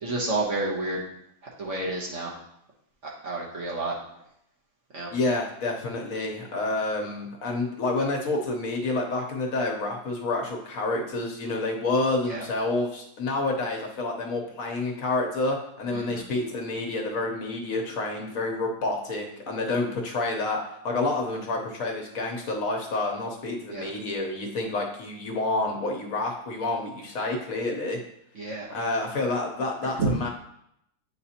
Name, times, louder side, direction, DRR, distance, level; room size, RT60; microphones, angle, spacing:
voice 1, 0.0-1.0 1.6-2.3 3.0-3.9 4.9-5.1 12.3-12.4 15.9-16.3 23.7-23.9 28.3-28.7 30.0-30.1, right 2 dB, 50° right, -3 dB, 1.3 m, -30 dB
voice 2, 5.1-28.0 28.7-30.3, left 2 dB, 60° left, 1 dB, 1.2 m, -29 dB
8.4 x 4.2 x 2.8 m, 0.75 s
omnidirectional pair, 1.7 m